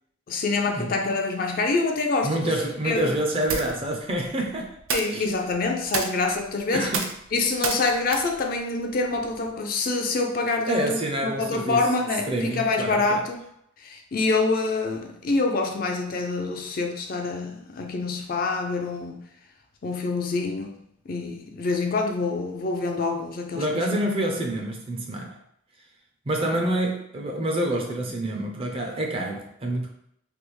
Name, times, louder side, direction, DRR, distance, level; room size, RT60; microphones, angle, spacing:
voice 1, 0.3-2.6 2.8-3.1 4.9-6.9 7.3-13.4 13.8-19.2 19.8-20.8 21.1-23.9, left 3 dB, 45° left, 3 dB, 0.4 m, -26 dB
voice 2, 2.2-4.8 5.1-5.2 6.7-7.1 10.7-11.8 12.3-13.2 23.6-25.4 26.3-29.9, right 1 dB, 25° right, 1 dB, 0.4 m, -27 dB
sound 1, 3.1-9.6, right 5 dB, 80° right, 0.5 m, -34 dB
3.4 x 2.3 x 3.1 m, 0.74 s
head